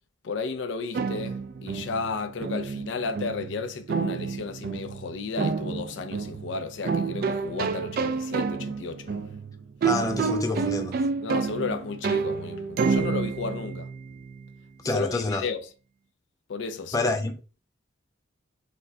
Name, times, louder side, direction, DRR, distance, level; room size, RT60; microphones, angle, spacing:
voice 1, 0.2-9.4 11.2-13.9 14.8-15.6 16.5-17.3, left 4 dB, 80° left, 0.4 m, -33 dB
sound 1, 0.9-14.5, right 5 dB, 55° right, 0.3 m, -29 dB
voice 2, 9.8-11.0 14.8-15.5 16.9-17.4, left 2 dB, 20° left, 0.4 m, -27 dB
4.2 x 2.1 x 2.7 m
head